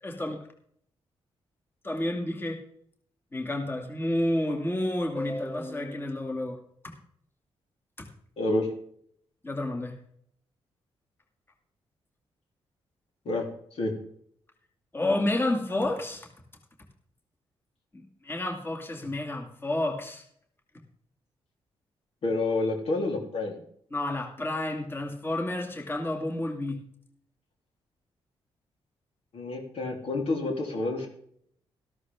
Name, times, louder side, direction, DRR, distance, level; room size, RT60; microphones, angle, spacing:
voice 1, 0.0-0.4 1.8-2.6 3.3-6.6 8.0-8.1 9.4-9.9 14.9-16.3 17.9-20.2 23.9-26.8, left 1 dB, 20° left, 1 dB, 2.4 m, -30 dB
voice 2, 8.4-8.7 13.2-13.4 13.8-13.9 22.2-23.6 29.3-31.1, left 2 dB, 70° left, 1 dB, 3.4 m, -28 dB
13.5 x 12.5 x 3.6 m, 0.65 s
cardioid pair, 80°, 10 cm